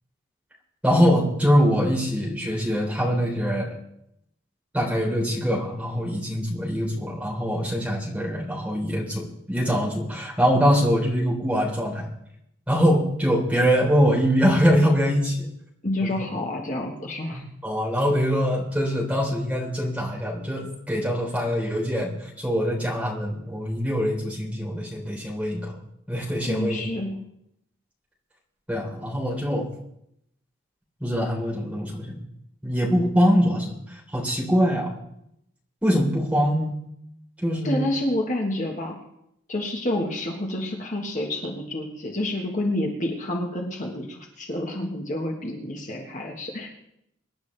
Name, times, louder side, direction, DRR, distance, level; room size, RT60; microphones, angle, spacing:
voice 1, 0.8-3.8 4.7-12.1 12.7-15.5 16.0-16.1 17.3-25.8 26.1-26.8 28.7-29.7 31.0-32.2 32.6-34.9 35.8-36.8 37.4-37.9, equal, 5° right, -3 dB, 3.9 m, -23 dB
voice 2, 15.8-17.4 26.4-27.2 37.6-39.0 39.5-46.7, left 1 dB, 40° left, 0 dB, 1.6 m, -28 dB
25.0 x 10.5 x 3.4 m, 0.79 s
head